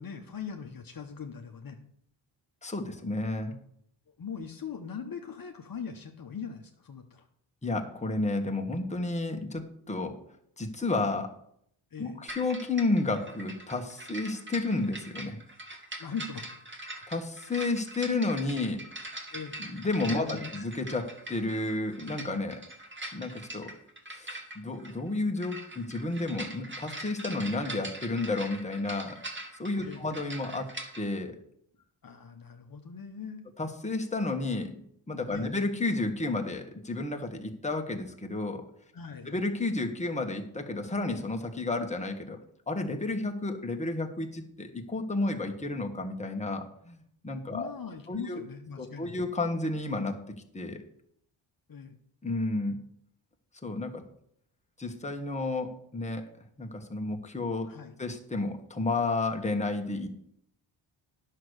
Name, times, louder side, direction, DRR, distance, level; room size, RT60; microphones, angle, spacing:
voice 1, 0.0-1.8 4.1-7.3 11.9-12.2 16.0-16.5 19.3-19.6 20.1-20.6 29.8-30.1 32.0-33.5 35.3-35.6 38.9-39.3 47.5-49.1 51.7-51.9 57.6-57.9, left 6 dB, 45° left, 3 dB, 1.1 m, -41 dB
voice 2, 2.6-3.6 7.6-10.2 10.6-11.4 12.0-15.4 17.1-18.8 19.6-22.6 23.1-23.7 24.1-29.2 29.6-31.4 33.6-34.7 35.1-38.7 39.2-42.4 42.7-47.7 48.1-48.4 48.8-50.8 52.2-52.8 53.6-54.1 54.8-56.3 56.6-57.7 58.0-60.1, left 2 dB, 15° left, 3 dB, 1.5 m, -31 dB
sound 1, 12.3-31.0, right 1 dB, 25° right, 1.9 m, -42 dB
10.5 x 6.7 x 6.4 m, 0.70 s
cardioid pair, 95°, 48 cm